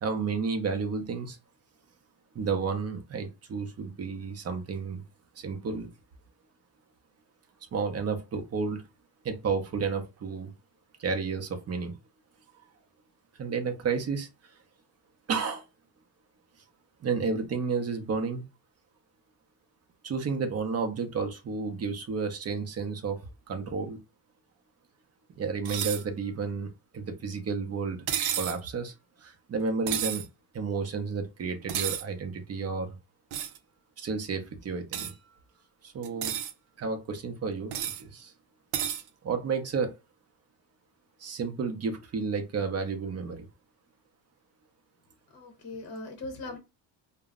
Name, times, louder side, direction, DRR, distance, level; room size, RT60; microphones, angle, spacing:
voice 1, 0.0-1.4 2.3-5.0 5.4-5.9 7.7-8.8 9.2-10.5 11.0-12.0 13.4-14.3 15.3-15.6 17.0-18.4 20.0-24.0 25.4-28.1 28.3-28.9 29.2-30.2 30.5-33.0 34.0-35.1 35.8-36.4 36.8-38.3 38.8-38.9 39.2-39.9 41.2-43.5, right 5 dB, 30° right, 0.6 m, -31 dB
sound 1, 25.6-26.0 28.1-28.6 29.9-30.2 31.7-32.0 33.3-33.6 34.9-35.1 36.0-36.5 37.7-38.0 38.7-39.0, right 10 dB, 85° right, 0.6 m, -31 dB
voice 2, 45.3-46.6, left 2 dB, 30° left, 0.7 m, -39 dB
2.2 x 2.0 x 3.5 m
cardioid pair, 115°, 48 cm